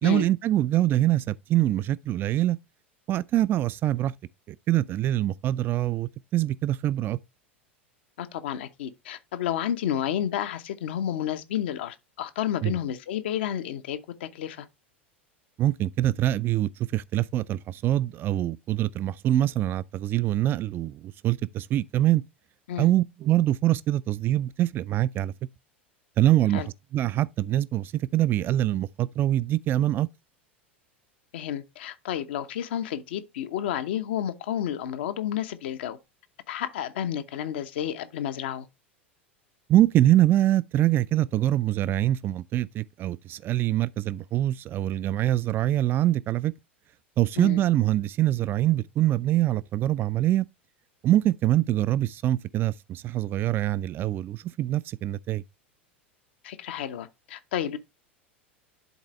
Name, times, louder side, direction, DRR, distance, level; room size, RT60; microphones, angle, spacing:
voice 1, 0.0-2.6 3.1-4.1 4.5-7.2 12.6-12.8 15.6-22.2 22.8-25.3 26.2-26.6 26.9-30.1 39.7-46.5 47.2-50.5 51.0-55.4, right 13 dB, 35° right, 0.4 m, -24 dB
voice 2, 8.2-14.7 22.7-22.9 26.5-26.7 31.3-36.0 36.5-38.7 47.4-47.6 56.4-57.8, left 10 dB, 60° left, 0.8 m, -31 dB
11.0 x 4.1 x 3.0 m
figure-of-eight pair, 85°, 6 cm